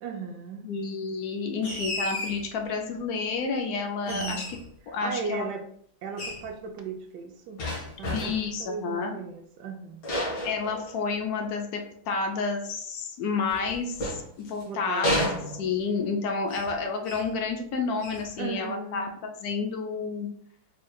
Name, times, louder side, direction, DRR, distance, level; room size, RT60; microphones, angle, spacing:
voice 1, 0.0-0.7 4.1-4.5 4.9-5.6 6.0-7.6 8.0-10.1 14.7-15.1 18.4-19.1, right 5 dB, 70° right, 4 dB, 1.0 m, -36 dB
voice 2, 0.6-4.4 4.9-5.5 8.1-9.1 10.4-15.3 15.5-20.3, left 4 dB, 75° left, 3 dB, 0.8 m, -30 dB
sound 1, 1.6-2.4 4.1-4.7 6.2-6.5 7.6-8.5 10.0-11.3 13.5-14.6 15.0-15.9 16.5-16.8 17.0-17.3 18.0-18.3, left 1 dB, 50° left, 1.4 m, -32 dB
4.5 x 3.1 x 2.3 m, 0.64 s
omnidirectional pair, 2.1 m